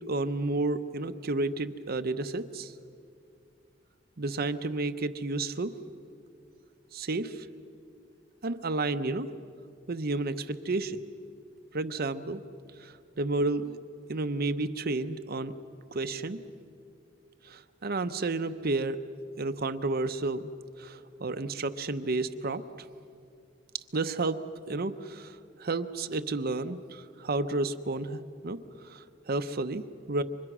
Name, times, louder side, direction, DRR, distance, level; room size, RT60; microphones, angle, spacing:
voice 1, 0.1-2.7 4.2-5.7 6.9-7.5 8.4-9.3 9.9-11.0 11.7-12.4 12.8-13.8 14.1-15.5 15.9-16.4 17.4-19.0 19.4-20.5 20.8-22.6 23.9-24.4 24.7-28.6 28.8-30.2, right 2 dB, 55° right, 9 dB, 0.8 m, -31 dB
29.5 x 25.0 x 6.1 m, 2.4 s
head